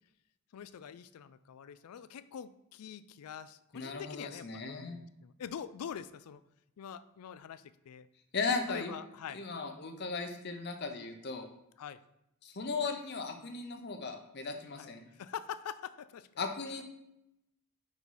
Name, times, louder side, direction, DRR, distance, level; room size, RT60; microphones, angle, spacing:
voice 1, 0.5-6.4 6.8-8.1 8.7-9.4 11.8-12.0 14.7-14.9 15.2-16.3, left 8 dB, 85° left, 15 dB, 0.4 m, -44 dB
voice 2, 3.7-5.0 8.3-9.0 9.3-11.5 12.4-15.0 16.4-16.8, left 4 dB, 45° left, 6 dB, 0.7 m, -37 dB
5.2 x 4.1 x 4.6 m, 0.86 s
head